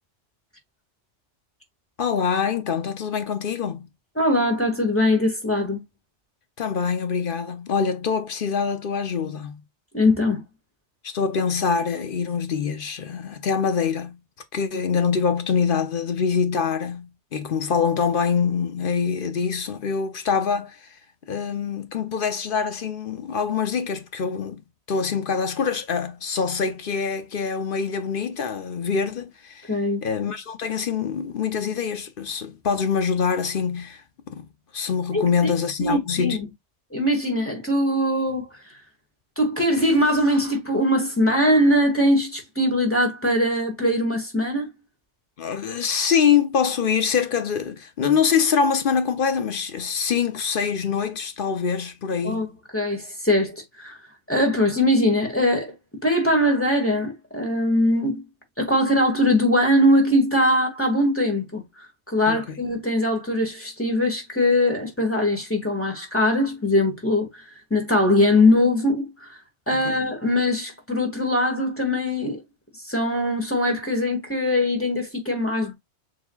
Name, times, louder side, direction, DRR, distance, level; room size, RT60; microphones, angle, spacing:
voice 1, 2.0-3.9 6.6-9.6 11.0-14.2 14.5-20.9 21.3-24.6 24.9-29.7 30.0-34.5 34.7-36.4 45.4-52.5 62.3-62.4 69.7-70.0, left 6 dB, 55° left, 0.8 m, -24 dB
voice 2, 4.2-5.8 9.9-10.4 29.7-30.0 35.1-35.5 35.8-36.5 36.9-38.5 39.4-44.7 52.2-52.5 52.7-54.0 54.3-55.7 56.0-58.2 58.6-61.6 62.1-67.4 67.7-69.4 69.7-72.4 72.8-75.7, left 1 dB, 10° left, 1.6 m, -21 dB
6.9 x 3.1 x 2.3 m
omnidirectional pair, 1.2 m